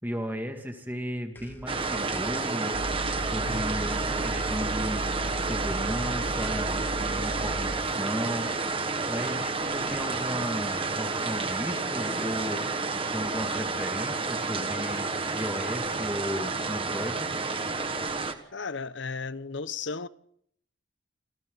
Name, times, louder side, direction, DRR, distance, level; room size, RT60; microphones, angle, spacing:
voice 1, 0.0-2.9 3.2-5.1 5.4-8.5 9.1-12.6 13.1-15.1 15.3-17.3, equal, 10° right, 2.6 m, -35 dB
sound 1, 1.4-2.9, equal, 10° left, 1.8 m, -46 dB
sound 2, 1.7-18.3, right 3 dB, 25° right, 1.7 m, -30 dB
sound 3, 2.7-7.8, right 1 dB, 90° right, 2.0 m, -35 dB
voice 2, 18.5-20.1, left 4 dB, 65° left, 0.9 m, -34 dB
29.0 x 27.5 x 4.1 m
head